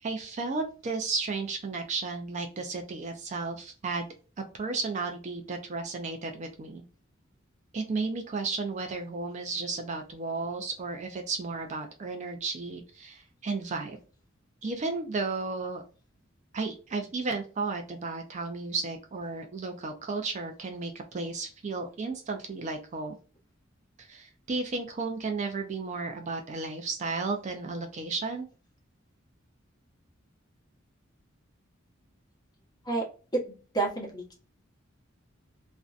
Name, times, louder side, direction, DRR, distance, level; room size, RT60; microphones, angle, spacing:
voice 1, 0.0-4.1 4.4-6.8 7.7-14.0 14.6-15.8 16.5-23.1 24.0-28.5, right 3 dB, 35° right, 4 dB, 0.4 m, -33 dB
voice 2, 33.7-34.3, right 3 dB, 20° left, -2 dB, 0.9 m, -28 dB
2.5 x 2.1 x 2.4 m, 0.36 s
head